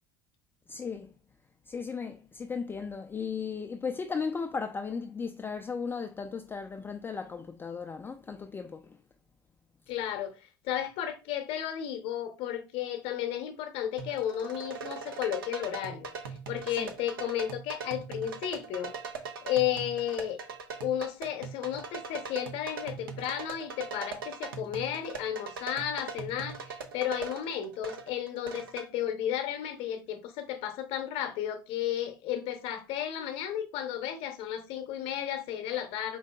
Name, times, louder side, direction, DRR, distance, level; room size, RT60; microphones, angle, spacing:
voice 1, 0.7-1.1 1.7-9.0 16.8-16.9, left 5 dB, 20° left, 0.3 m, -36 dB
voice 2, 9.9-16.1 16.5-18.9 19.4-20.4 20.8-36.2, left 10 dB, 55° left, 0.7 m, -33 dB
sound 1, 14.0-28.9, right 5 dB, 80° right, 0.5 m, -41 dB
4.7 x 2.7 x 2.2 m
hypercardioid pair, 70°, 12 cm